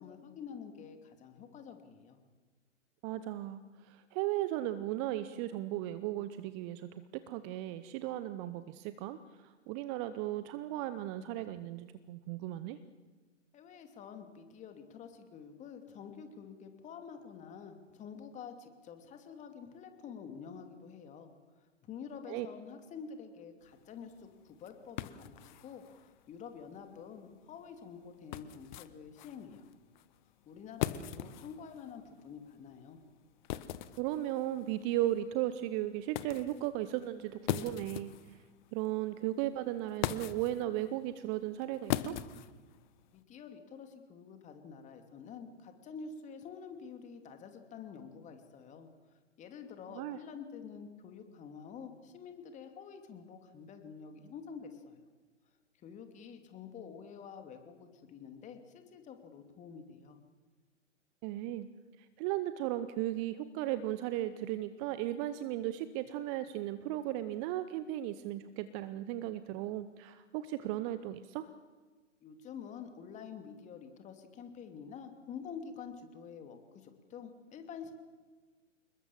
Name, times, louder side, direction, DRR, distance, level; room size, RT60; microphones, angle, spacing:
voice 1, 0.0-2.2 13.5-29.6 30.5-33.0 43.1-48.9 49.4-55.0 55.8-60.2 72.2-77.9, left 6 dB, 20° left, 6 dB, 2.8 m, -48 dB
voice 2, 3.0-12.8 22.3-22.5 34.0-38.4 38.7-42.2 49.9-50.2 61.2-61.7 62.2-71.5, right 14 dB, 25° right, 13 dB, 0.8 m, -36 dB
sound 1, 23.6-43.2, left 12 dB, 40° left, 1.3 m, -42 dB
28.0 x 21.5 x 7.4 m, 1.4 s
figure-of-eight pair, 115°, 37 cm